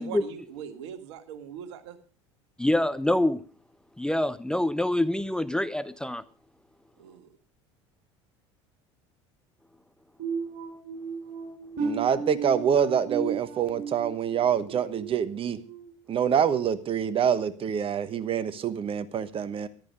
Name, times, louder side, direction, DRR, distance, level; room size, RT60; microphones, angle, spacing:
voice 1, 0.0-2.0 7.0-7.3, right 8 dB, 70° right, 9 dB, 1.8 m, -41 dB
voice 2, 2.6-3.4 4.0-6.2, left 1 dB, 5° left, 14 dB, 0.6 m, -26 dB
sound 1, 10.2-15.8 16.3-16.6 17.1-17.3, right 4 dB, 55° right, 5.5 m, -35 dB
voice 3, 11.8-15.6 16.1-19.7, right 8 dB, 35° right, 14 dB, 1.2 m, -26 dB
14.5 x 11.0 x 5.4 m, 0.40 s
hypercardioid pair, 70°, 15 cm